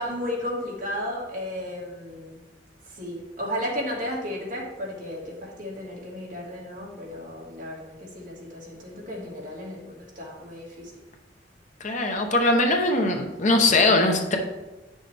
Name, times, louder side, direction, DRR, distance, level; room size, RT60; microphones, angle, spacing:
voice 1, 0.0-2.4 2.9-10.9, equal, 50° right, -3 dB, 2.0 m, -34 dB
voice 2, 11.8-14.4, left 2 dB, 45° left, 3 dB, 0.9 m, -21 dB
8.9 x 6.3 x 3.4 m, 1.1 s
head